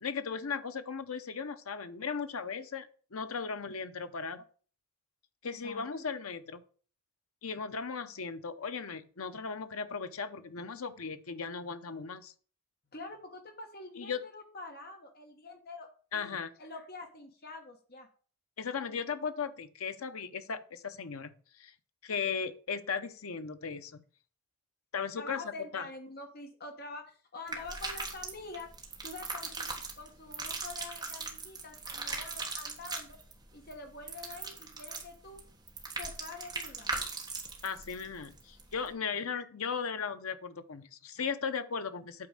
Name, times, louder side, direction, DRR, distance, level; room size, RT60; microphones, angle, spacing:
voice 1, 0.0-4.4 5.4-6.6 7.4-12.3 14.0-14.2 16.1-16.5 18.6-21.7 22.0-24.0 24.9-25.9 37.6-42.3, left 6 dB, 75° left, 10 dB, 0.8 m, -37 dB
voice 2, 5.4-5.8 12.9-15.9 16.1-18.1 25.2-28.7 29.0-33.2 33.5-35.4 36.0-37.0 39.3-39.4, left 3 dB, 45° left, 4 dB, 1.3 m, -46 dB
sound 1, 27.5-38.9, right 3 dB, 20° right, 1.4 m, -40 dB
8.6 x 4.3 x 6.5 m, 0.42 s
head